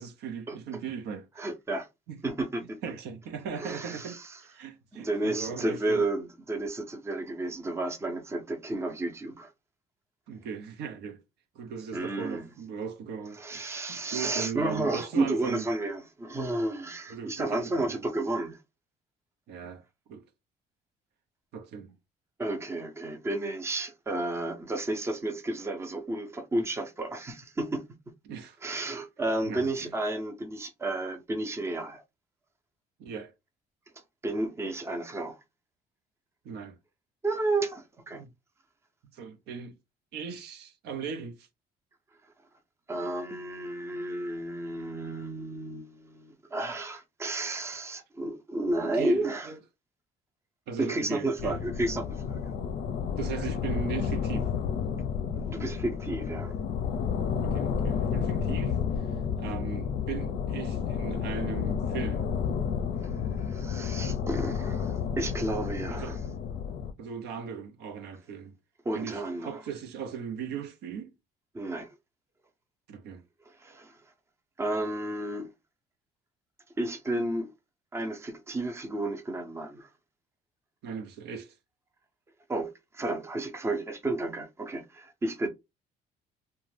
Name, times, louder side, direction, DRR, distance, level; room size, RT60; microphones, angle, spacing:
voice 1, 0.0-1.3 2.1-2.2 2.8-6.1 10.3-11.2 11.6-15.6 17.1-18.0 19.5-19.8 20.1-20.2 21.5-21.9 28.3-28.6 29.4-29.9 33.0-33.3 36.4-36.8 38.1-38.3 39.1-39.7 40.1-41.5 48.8-49.6 50.7-51.6 53.2-54.5 57.4-59.1 59.4-62.3 65.9-66.2 67.0-68.6 68.9-71.1 72.9-73.2 80.8-81.5, right 6 dB, 80° right, 0.6 m, -38 dB
voice 2, 1.4-1.9 2.2-2.8 3.6-4.4 4.9-9.5 11.9-12.4 13.4-18.6 22.4-27.8 28.6-32.0 34.2-35.4 37.2-38.2 42.9-49.5 50.8-52.5 55.3-56.6 63.0-66.2 68.8-69.6 71.5-72.0 73.5-74.0 74.6-75.5 76.8-77.5 77.9-79.9 82.5-85.5, right 2 dB, 15° right, 0.6 m, -32 dB
sound 1, 51.4-66.9, left 7 dB, 60° left, 0.5 m, -31 dB
2.5 x 2.2 x 3.2 m
cardioid pair, 110°, 17 cm